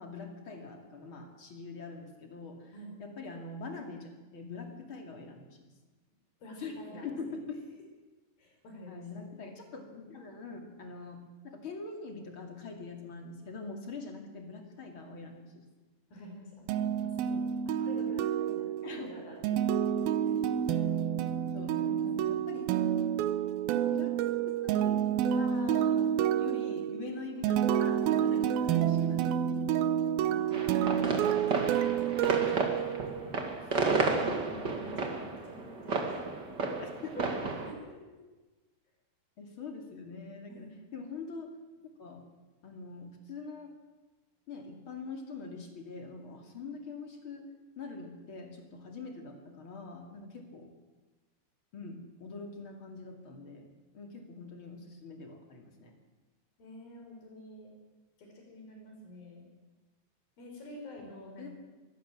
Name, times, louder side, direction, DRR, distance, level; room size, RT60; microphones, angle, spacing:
voice 1, 0.0-2.7 3.0-5.5 6.6-6.7 7.0-7.6 8.9-15.6 18.8-19.2 21.5-21.7 22.0-22.7 23.9-24.1 24.5-29.4 32.2-32.6 36.8-37.3 39.4-41.5 42.0-42.2 42.6-43.7 44.5-47.4 47.8-50.7 51.7-55.9 61.4-61.5, left 4 dB, 35° left, 4 dB, 2.8 m, -44 dB
voice 2, 6.4-7.4 8.4-9.2 16.1-19.8 20.2-20.4 21.7-22.3 28.2-28.4 30.2-31.0 33.0-33.4 34.0-36.1 37.7-38.1 40.5-40.8 50.1-50.5 56.6-57.7 58.2-59.5 60.4-61.5, left 1 dB, 65° left, 0 dB, 6.9 m, -49 dB
sound 1, 16.7-33.4, right 9 dB, 75° right, 2.6 m, -29 dB
sound 2, 30.5-37.7, right 3 dB, 35° right, 2.3 m, -32 dB
22.5 x 16.5 x 7.6 m, 1.2 s
omnidirectional pair, 4.4 m